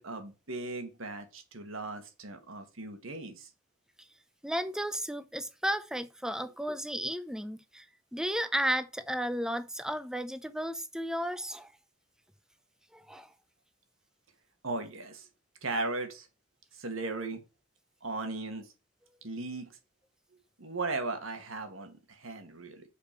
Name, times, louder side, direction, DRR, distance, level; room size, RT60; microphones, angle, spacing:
voice 1, 0.0-3.5 14.6-15.3 15.6-16.3 16.7-17.4 18.0-18.7 19.2-19.7 20.6-22.8, right 3 dB, 80° right, 1.9 m, -37 dB
voice 2, 4.4-7.9 8.1-11.7 12.9-13.3, equal, 5° right, 0.6 m, -33 dB
6.6 x 5.0 x 6.8 m
head